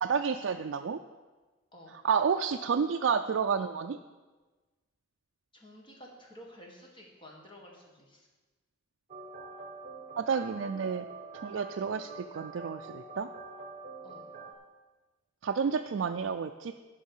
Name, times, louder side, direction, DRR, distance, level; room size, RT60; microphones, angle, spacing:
voice 1, 0.0-1.0 2.0-4.0 10.2-11.1 11.4-13.3 15.4-16.7, right 6 dB, 70° right, 5 dB, 0.4 m, -30 dB
voice 2, 5.5-8.3 14.0-14.3, equal, 25° left, -1 dB, 1.7 m, -52 dB
sound 1, 9.1-14.5, right 3 dB, 35° right, 1.1 m, -45 dB
10.0 x 5.5 x 7.2 m, 1.3 s
head